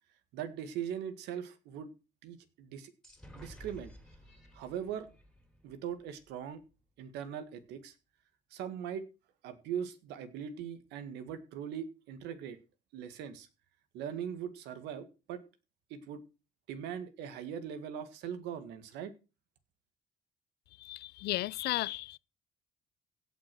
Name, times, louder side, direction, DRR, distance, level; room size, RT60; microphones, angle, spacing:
voice 1, 0.3-1.9 2.2-2.9 3.3-3.9 4.5-5.1 5.6-6.6 7.0-7.9 8.5-9.1 9.4-12.6 12.9-13.5 13.9-15.4 15.9-16.2 16.7-19.1, right 8 dB, 90° right, 1.9 m, -40 dB
sound 1, 3.0-6.7, equal, 5° left, 3.3 m, -54 dB
voice 2, 20.8-22.2, left 17 dB, 75° left, 0.5 m, -34 dB
16.5 x 6.2 x 6.1 m
cardioid pair, 110°, 17 cm